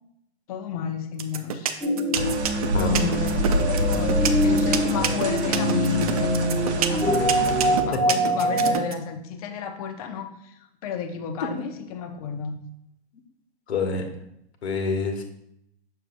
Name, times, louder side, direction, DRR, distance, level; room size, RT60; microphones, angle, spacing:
voice 1, 0.5-1.8 2.5-12.6, left 6 dB, 35° left, 6 dB, 0.7 m, -33 dB
sound 1, 1.2-8.9, right 9 dB, 35° right, 0.4 m, -26 dB
sound 2, 1.8-8.7, equal, ahead, 0.8 m, -24 dB
sound 3, 2.1-7.8, right 1 dB, 90° right, 1.0 m, -27 dB
voice 2, 2.5-3.1 7.9-8.0 13.7-14.0 14.6-15.2, left 3 dB, 75° left, 4 dB, 1.4 m, -27 dB
6.5 x 6.2 x 2.5 m, 0.76 s
hypercardioid pair, 155°, 33 cm